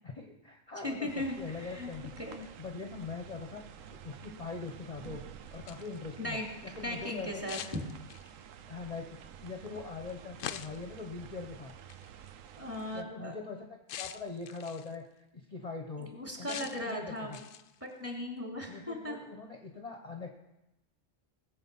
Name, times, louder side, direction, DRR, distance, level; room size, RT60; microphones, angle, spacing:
voice 1, 0.0-2.2 2.6-3.6 3.9-5.2 5.5-7.7 8.7-11.7 12.9-13.6 14.0-15.0 15.3-16.1 16.4-17.4 18.6-20.3, left 4 dB, 30° left, 2 dB, 1.2 m, -42 dB
voice 2, 0.8-1.9 2.2-2.4 6.2-6.5 6.8-7.8 12.6-13.3 16.0-17.4 17.8-19.2, left 1 dB, 10° right, -1 dB, 2.8 m, -37 dB
sound 1, 1.1-13.0, right 9 dB, 80° right, 1.1 m, -50 dB
sound 2, 5.5-6.0 7.5-8.4 10.4-10.9 11.9-12.1 13.9-15.0 16.5-16.9 17.3-17.8, left 10 dB, 75° left, 1.0 m, -43 dB
19.5 x 7.6 x 5.7 m, 0.91 s
omnidirectional pair, 1.4 m